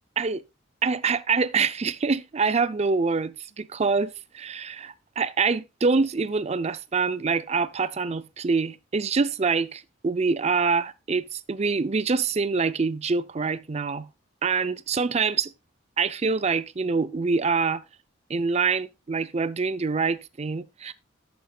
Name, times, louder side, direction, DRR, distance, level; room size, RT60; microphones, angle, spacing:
voice 1, 0.8-14.1 14.4-15.5 16.0-17.8 18.3-20.9, right 4 dB, 35° right, 0.5 m, -25 dB
10.5 x 9.4 x 2.3 m
head